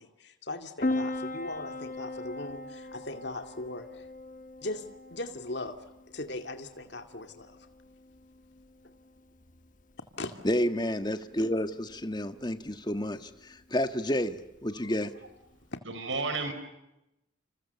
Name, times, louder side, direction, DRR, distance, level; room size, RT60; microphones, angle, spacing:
voice 1, 0.0-4.1 4.6-4.8 5.1-5.8 6.1-7.6 10.2-10.3, left 2 dB, 55° left, 6 dB, 2.4 m, -39 dB
Piano, 0.8-15.8, left 2 dB, 40° left, 1.4 m, -40 dB
voice 2, 10.4-15.1, equal, 20° left, 9 dB, 1.5 m, -30 dB
voice 3, 15.8-16.5, right 3 dB, 70° right, 9 dB, 5.4 m, -33 dB
29.5 x 28.0 x 7.0 m, 0.90 s
head